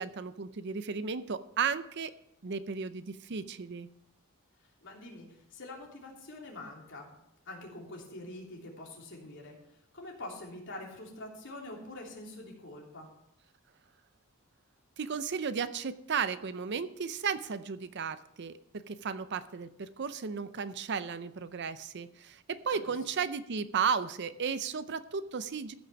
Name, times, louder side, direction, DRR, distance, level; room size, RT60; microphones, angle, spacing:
voice 1, 0.0-2.1 2.4-3.9 15.0-25.7, right 6 dB, 55° right, 13 dB, 0.6 m, -34 dB
voice 2, 4.8-7.1 7.4-9.6 9.9-13.1 22.7-22.9, left 2 dB, 60° left, -2 dB, 3.3 m, -45 dB
15.0 x 6.2 x 5.9 m, 0.77 s
head